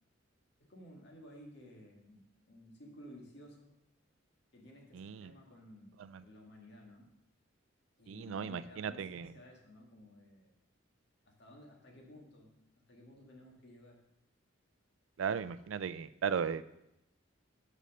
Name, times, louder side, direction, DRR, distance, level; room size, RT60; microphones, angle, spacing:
voice 1, 0.7-3.7 4.5-7.1 8.0-10.5 11.3-12.5 12.9-14.0, left 1 dB, 60° left, 0 dB, 1.8 m, -55 dB
voice 2, 4.9-5.3 6.1-6.2 8.1-9.3 15.2-16.6, right 7 dB, 75° right, 15 dB, 0.4 m, -36 dB
6.3 x 5.4 x 6.4 m, 0.84 s
head